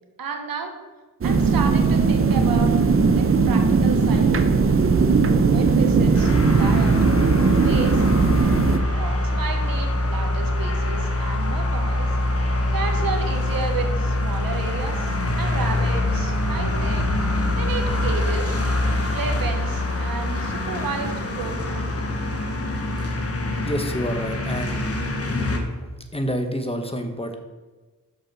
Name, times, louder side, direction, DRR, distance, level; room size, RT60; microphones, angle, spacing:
voice 1, 0.2-0.7 1.2-2.7 3.1-4.6 5.5-6.9 7.6-8.0 8.9-12.1 12.7-17.1 17.6-18.6 19.1-22.0, right 4 dB, 85° right, 4 dB, 1.2 m, -32 dB
sound 1, 1.2-8.8, right 4 dB, 40° right, 0.7 m, -18 dB
sound 2, 6.1-25.6, left 1 dB, 45° left, 1.2 m, -24 dB
voice 2, 23.6-24.8 26.1-27.4, equal, 15° left, 6 dB, 1.0 m, -28 dB
6.4 x 5.3 x 6.0 m, 1.3 s
cardioid pair, 70°, 34 cm